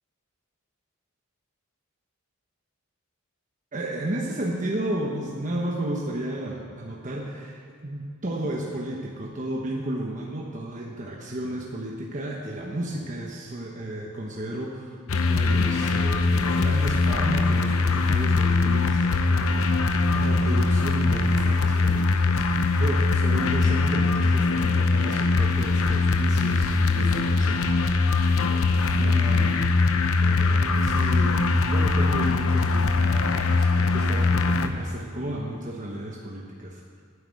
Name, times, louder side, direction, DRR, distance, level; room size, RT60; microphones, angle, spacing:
voice 1, 3.7-15.0 15.2-29.9 30.2-37.0, right 1 dB, 35° right, -2 dB, 1.1 m, -33 dB
sound 1, 15.1-34.7, left 3 dB, 80° left, 0.7 m, -22 dB
9.4 x 9.2 x 7.6 m, 2.2 s
head